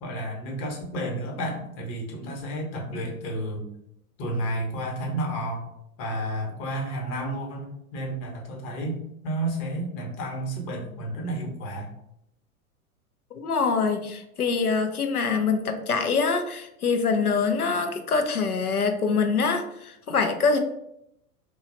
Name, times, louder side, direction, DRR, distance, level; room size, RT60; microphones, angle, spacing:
voice 1, 0.0-3.7 4.2-5.7 6.0-11.9, right 1 dB, 40° left, 1 dB, 1.1 m, -31 dB
voice 2, 13.4-20.6, left 5 dB, 90° left, 6 dB, 0.6 m, -24 dB
2.9 x 2.3 x 3.9 m, 0.79 s
figure-of-eight pair, 90°, 43 cm